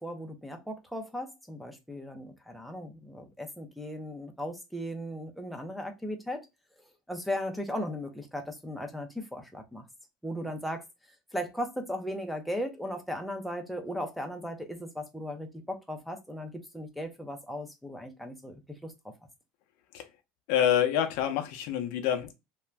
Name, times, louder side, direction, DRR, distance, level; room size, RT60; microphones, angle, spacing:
voice 1, 0.0-6.5 7.1-9.8 10.2-10.8 11.3-18.9, equal, ahead, 0.5 m, -37 dB
voice 2, 20.5-22.3, left 10 dB, 65° left, 0.5 m, -27 dB
2.5 x 2.1 x 3.2 m
cardioid pair, 145°, 4 cm